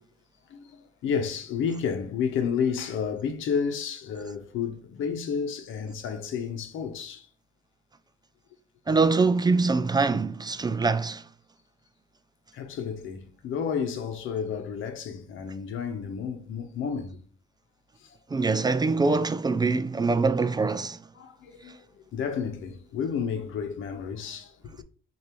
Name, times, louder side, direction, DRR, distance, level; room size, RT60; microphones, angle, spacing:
voice 1, 0.5-7.3 12.5-17.2 21.2-21.8 22.1-24.8, left 6 dB, 80° left, 0.9 m, -31 dB
voice 2, 8.9-11.2 18.3-21.0, right 4 dB, 20° right, 0.3 m, -24 dB
6.6 x 2.6 x 3.1 m
cardioid pair, 90°, 20 cm